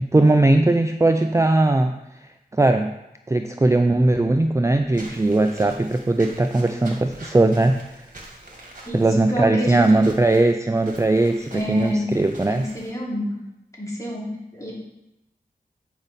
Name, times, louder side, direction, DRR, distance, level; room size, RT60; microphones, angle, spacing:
voice 1, 0.0-2.0 2.5-2.9 3.3-8.1 8.9-12.6, right 2 dB, 20° right, 7 dB, 0.4 m, -19 dB
Walk footsteps / Squeak, 4.9-12.9, right 1 dB, 50° right, 1.7 m, -44 dB
voice 2, 8.9-10.0 11.5-12.2 12.5-13.4 13.8-14.7, left 1 dB, 20° left, -5 dB, 2.9 m, -28 dB
8.8 x 5.1 x 4.1 m, 0.90 s
wide cardioid pair, 50°, 17 cm